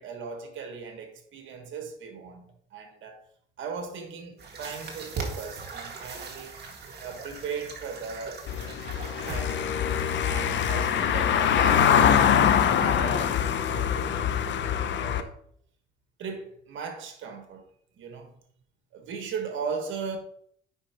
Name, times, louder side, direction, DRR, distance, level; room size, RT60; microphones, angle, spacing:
voice 1, 0.0-3.2 3.6-6.6 7.0-8.5 9.3-9.8 10.2-15.3 16.2-17.6 18.0-18.4 18.9-20.2, right 5 dB, 75° right, 1.4 m, -38 dB
sound 1, 4.4-11.1, right 4 dB, 55° right, 1.8 m, -40 dB
Car passing by / Engine, 8.5-15.2, left 8 dB, 65° left, 0.7 m, -23 dB
8.6 x 5.5 x 2.9 m
cardioid pair, 90°, 20 cm